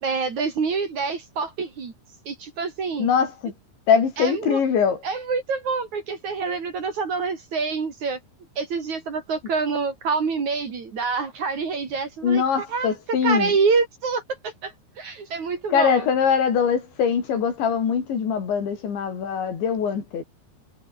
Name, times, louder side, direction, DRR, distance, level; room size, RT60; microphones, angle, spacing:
voice 1, 0.0-1.9 2.3-3.1 4.2-4.6 5.0-8.2 8.6-12.4 12.7-12.9 13.2-14.7 15.0-16.1, right 5 dB, 45° right, 4.2 m, -26 dB
voice 2, 3.0-3.5 3.9-5.0 12.2-13.5 15.7-20.2, left 7 dB, 80° left, 6.8 m, -22 dB
omnidirectional pair, 5.2 m